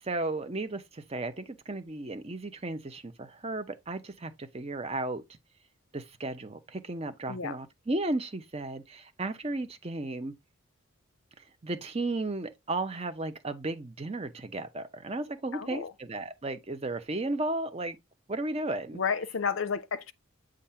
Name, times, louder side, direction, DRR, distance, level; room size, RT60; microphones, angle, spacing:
voice 1, 0.0-5.2 5.9-10.3 11.6-18.0 18.3-19.0, right 2 dB, 25° right, 0.6 m, -34 dB
voice 2, 15.5-15.9 18.9-20.1, left 6 dB, 60° left, 0.5 m, -31 dB
7.1 x 2.5 x 5.5 m
head